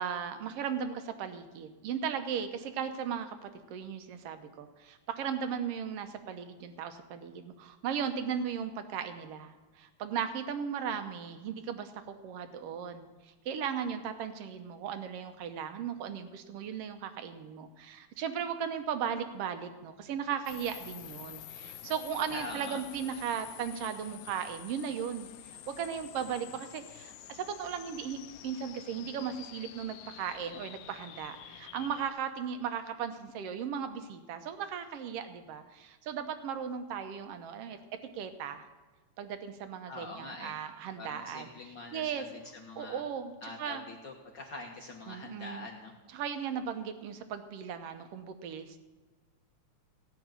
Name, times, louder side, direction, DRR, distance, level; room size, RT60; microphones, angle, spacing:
voice 1, 0.0-28.2 28.4-38.7 39.2-41.5 41.9-42.3 42.8-43.8 45.1-45.7 46.1-48.8, right 7 dB, 65° right, 8 dB, 1.7 m, -37 dB
sound 1, 20.5-32.1, left 12 dB, 90° left, 2.0 m, -48 dB
voice 2, 22.3-22.8 39.9-40.5 41.0-43.0 43.4-45.9, left 2 dB, 55° left, 0 dB, 1.4 m, -44 dB
16.5 x 6.1 x 8.9 m, 1.3 s
omnidirectional pair, 3.3 m